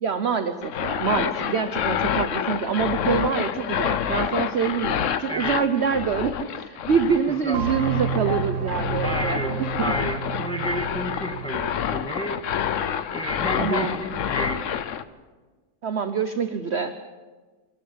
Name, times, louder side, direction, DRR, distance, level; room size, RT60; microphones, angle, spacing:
voice 1, 0.0-9.9 13.6-14.0 15.8-17.0, right 6 dB, 50° right, 9 dB, 0.8 m, -25 dB
sound 1, 0.6-15.0, left 9 dB, 60° left, 0.8 m, -28 dB
voice 2, 5.3-5.6 7.3-7.6 9.0-12.4 12.7-12.8 13.1-14.6, equal, 5° left, 3 dB, 1.9 m, -31 dB
sound 2, 7.5-11.7, right 6 dB, 85° right, 2.5 m, -30 dB
25.0 x 13.0 x 8.6 m, 1.4 s
omnidirectional pair, 2.1 m